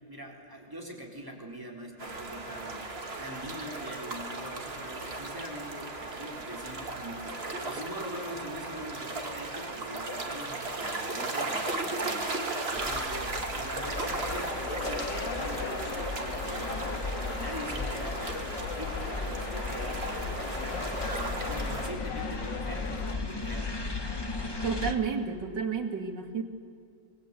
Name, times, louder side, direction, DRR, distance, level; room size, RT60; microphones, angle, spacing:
voice 1, 0.1-2.9 3.2-20.1 20.4-23.7, equal, 10° right, -1 dB, 3.9 m, -43 dB
sound 1, 2.0-21.9, right 2 dB, 35° right, 2.3 m, -36 dB
sound 2, 12.8-24.9, left 3 dB, 15° left, 1.3 m, -37 dB
sound 3, 13.8-23.1, left 4 dB, 75° left, 2.3 m, -38 dB
voice 2, 24.6-26.4, right 5 dB, 70° right, 3 dB, 2.9 m, -31 dB
26.5 x 20.5 x 8.4 m, 2.3 s
omnidirectional pair, 2.0 m